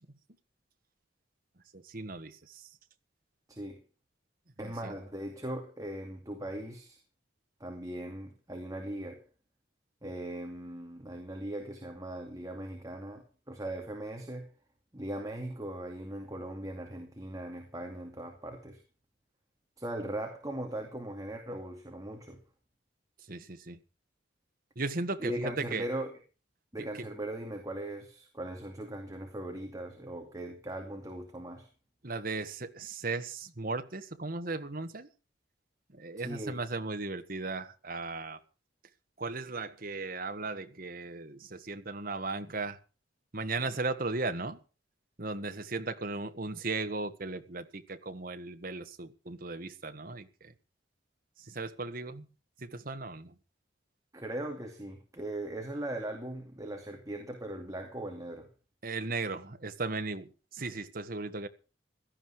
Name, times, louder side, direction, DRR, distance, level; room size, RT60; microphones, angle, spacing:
voice 1, 1.7-2.7 4.6-4.9 23.3-23.8 24.7-25.9 32.0-35.1 35.9-38.4 39.2-42.8 43.3-44.6 45.2-50.5 51.4-52.3 52.6-53.3 58.8-61.5, right 3 dB, 50° right, 1.5 m, -36 dB
voice 2, 3.5-3.8 4.6-7.0 7.6-9.3 10.0-14.5 14.9-18.8 19.8-22.4 25.2-26.1 26.7-31.7 36.2-36.6 54.1-58.5, right 1 dB, 20° right, 2.5 m, -39 dB
16.5 x 13.0 x 4.8 m
head